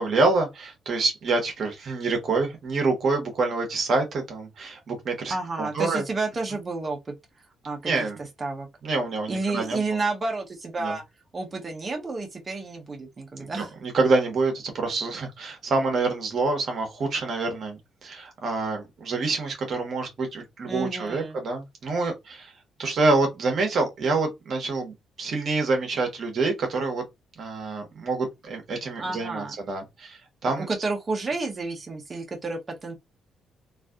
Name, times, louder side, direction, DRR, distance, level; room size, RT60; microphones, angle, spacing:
voice 1, 0.0-6.0 7.8-8.2 8.8-9.9 10.8-10.9 13.4-22.5 22.8-27.0 27.4-30.7, right 3 dB, 55° right, 1.2 m, -27 dB
voice 2, 5.3-7.0 7.6-8.1 8.4-8.7 9.3-11.0 11.3-13.7 20.7-21.4 29.0-29.5 30.5-33.0, right 3 dB, 35° right, 1.2 m, -30 dB
3.2 x 2.7 x 2.4 m
cardioid pair, 90°, 0 cm